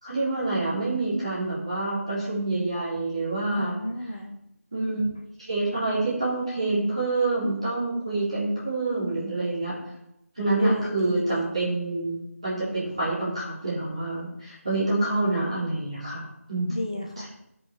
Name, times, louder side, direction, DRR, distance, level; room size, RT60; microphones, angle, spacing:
voice 1, 0.0-3.8 4.7-5.0 5.4-9.7 10.4-16.2 16.5-16.8 17.2-17.3, right 2 dB, 25° right, -9 dB, 3.8 m, -27 dB
voice 2, 3.6-4.4 10.6-11.7 16.7-17.3, left 1 dB, 25° left, 2 dB, 1.0 m, -32 dB
17.0 x 5.9 x 3.8 m, 0.81 s
figure-of-eight pair, 180°, 8 cm